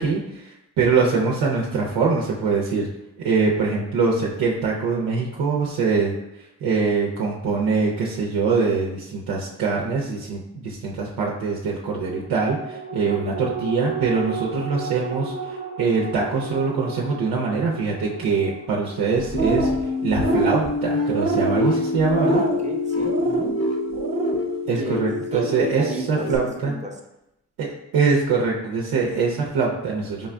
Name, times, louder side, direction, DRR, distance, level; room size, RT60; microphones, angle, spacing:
voice 1, 0.0-2.9 3.2-19.7 20.0-22.4 24.7-26.7 27.6-30.3, right 4 dB, 85° right, -2 dB, 0.6 m, -23 dB
sound 1, 12.1-22.9 23.3-23.4, right 4 dB, 60° left, 1.2 m, -35 dB
sound 2, 19.2-19.8 20.1-20.7 21.1-21.6 22.1-22.6 23.0-23.5 23.9-24.3, right 3 dB, 45° right, 0.9 m, -25 dB
sound 3, 19.3-26.4, left 2 dB, 40° left, 0.6 m, -26 dB
voice 2, 22.2-23.6 24.7-25.0 25.3-27.0, right 2 dB, 20° right, 1 dB, 0.7 m, -32 dB
5.0 x 2.5 x 2.2 m, 0.87 s
supercardioid pair, 60°, 39 cm